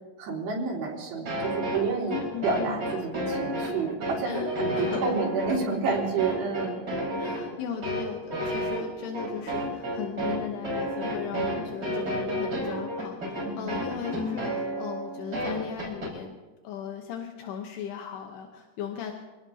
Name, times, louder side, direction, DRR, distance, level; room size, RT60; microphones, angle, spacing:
voice 1, 0.2-6.8 13.4-13.7, right 4 dB, 85° right, -4 dB, 5.6 m, -30 dB
sound 1, 1.3-16.1, equal, 30° right, 5.5 m, -31 dB
voice 2, 2.1-2.8 4.2-4.5 4.8-5.1 7.2-16.3 16.6-19.1, left 8 dB, 80° left, 3 dB, 3.0 m, -37 dB
28.0 x 18.0 x 2.8 m, 1.3 s
omnidirectional pair, 4.8 m